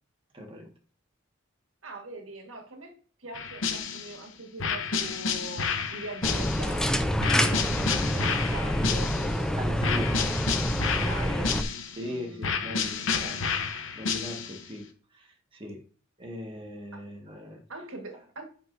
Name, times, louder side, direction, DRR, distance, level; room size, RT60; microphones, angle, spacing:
voice 1, 0.3-0.7 8.0-8.1 9.5-10.2 11.9-13.4 14.0-15.8 16.2-17.6, left 1 dB, 25° right, 1.6 m, -40 dB
voice 2, 1.8-9.6 10.0-10.3 10.5-11.5 12.0-13.3 16.9-17.0 17.7-18.4, right 2 dB, 90° right, 1.7 m, -43 dB
sound 1, 3.3-4.2 4.6-6.8 7.2-9.4 9.8-12.0 12.4-14.6, left 5 dB, 70° left, 0.9 m, -31 dB
sound 2, 6.2-11.6, equal, 5° left, 0.5 m, -27 dB
8.3 x 5.6 x 2.6 m
head